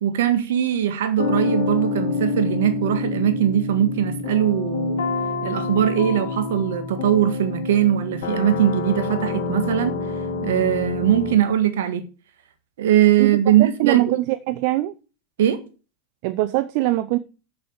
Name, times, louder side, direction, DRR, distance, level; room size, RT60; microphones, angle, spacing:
voice 1, 0.0-5.1 5.4-10.0 10.4-12.0 12.8-14.2 15.4-15.6, right 11 dB, 75° right, 1.5 m, -20 dB
sound 1, 1.2-11.4, left 4 dB, 75° left, 2.4 m, -27 dB
voice 2, 13.2-14.9 16.2-17.2, right 17 dB, 60° right, 0.6 m, -22 dB
7.0 x 6.8 x 7.1 m
hypercardioid pair, 100°, 0 cm